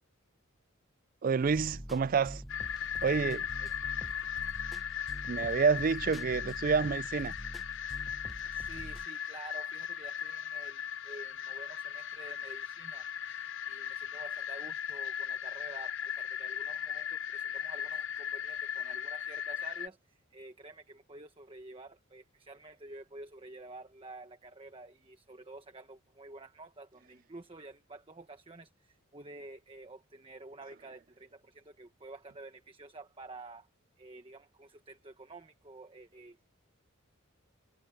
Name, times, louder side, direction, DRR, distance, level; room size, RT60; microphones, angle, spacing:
voice 1, 1.2-2.4 3.0-3.5 5.3-7.3, right 5 dB, 40° right, 0.4 m, -28 dB
sound 1, 1.4-9.1, equal, ahead, 1.0 m, -46 dB
sound 2, 2.5-19.9, left 9 dB, 60° left, 0.6 m, -38 dB
voice 2, 8.5-33.7 34.0-36.4, right 2 dB, 25° right, 1.2 m, -50 dB
head